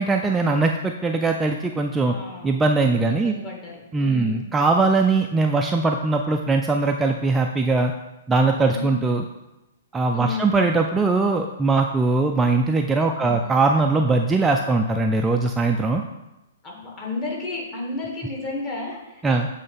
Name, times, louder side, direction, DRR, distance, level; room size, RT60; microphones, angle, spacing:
voice 1, 0.0-2.1 2.4-3.4 3.9-7.9 8.3-9.2 9.9-16.0 19.2-19.5, right 3 dB, 10° right, 3 dB, 0.4 m, -21 dB
voice 2, 2.1-2.6 3.1-4.5 8.7-9.0 10.1-10.5 13.2-13.5 16.6-19.2, left 3 dB, 30° left, -3 dB, 2.1 m, -33 dB
7.7 x 3.2 x 5.5 m, 0.98 s
figure-of-eight pair, 115°, 0 cm